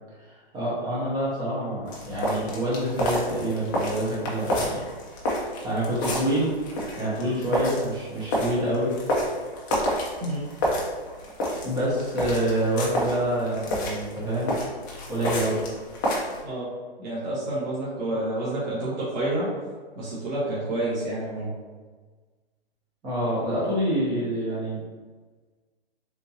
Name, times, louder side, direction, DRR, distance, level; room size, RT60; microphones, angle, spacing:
voice 1, 0.2-4.8 5.4-6.5 7.0-8.9 11.6-14.5 15.1-15.6 23.0-24.8, right 1 dB, 10° right, -7 dB, 0.9 m, -27 dB
sound 1, 1.9-16.4, equal, 20° left, 0.4 m, -30 dB
voice 2, 17.0-19.5 19.9-21.5, right 1 dB, 45° right, -8 dB, 1.1 m, -29 dB
3.6 x 2.6 x 2.8 m, 1.4 s
hypercardioid pair, 150°, 31 cm